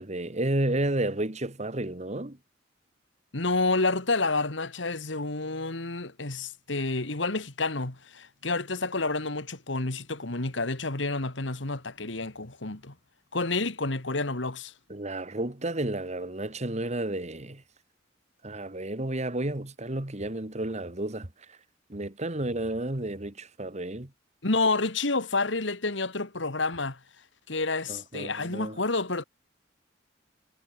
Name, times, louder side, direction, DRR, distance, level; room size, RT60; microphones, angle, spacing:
voice 1, 0.0-2.4 14.9-17.6 18.4-21.3 21.9-24.1 27.9-28.8, right 1 dB, 35° right, 2.0 m, -31 dB
voice 2, 3.3-12.9 13.3-14.7 24.4-27.0 27.5-29.2, left 3 dB, 70° left, 2.3 m, -29 dB
head